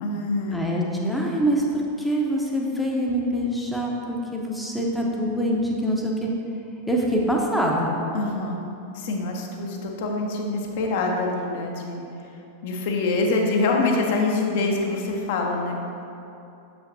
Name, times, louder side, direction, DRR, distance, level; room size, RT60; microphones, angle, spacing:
voice 1, 0.0-0.6 8.1-8.6 8.9-12.3 12.6-15.8, left 3 dB, 50° left, 1 dB, 0.7 m, -25 dB
voice 2, 0.5-6.3 6.9-8.0, equal, 5° left, -2 dB, 0.7 m, -24 dB
6.5 x 5.7 x 2.6 m, 2.7 s
figure-of-eight pair, 90°, 0 cm